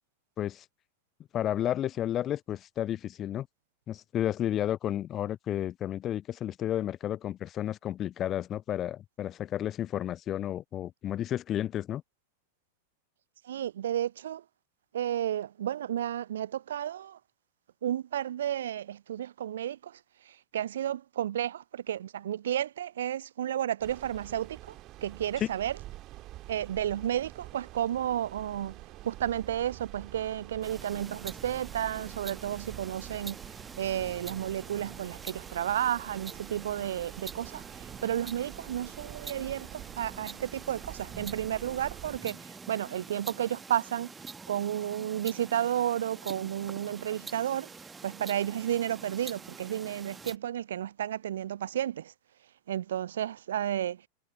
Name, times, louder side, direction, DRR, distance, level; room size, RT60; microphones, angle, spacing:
voice 1, 1.3-3.5 3.9-12.0 25.4-25.5, left 11 dB, 30° left, 0.3 m, -32 dB
voice 2, 13.4-14.4 14.9-17.2 17.8-20.0 20.3-24.8 25.0-25.7 26.5-28.8 29.0-33.4 33.8-44.1 44.5-47.7 48.0-52.1 52.7-54.0, right 11 dB, 60° right, 0.4 m, -32 dB
sound 1, 23.8-42.2, right 16 dB, 35° right, 1.9 m, -47 dB
sound 2, 30.6-50.4, right 4 dB, 15° right, 1.3 m, -46 dB
figure-of-eight pair, 90°, 0 cm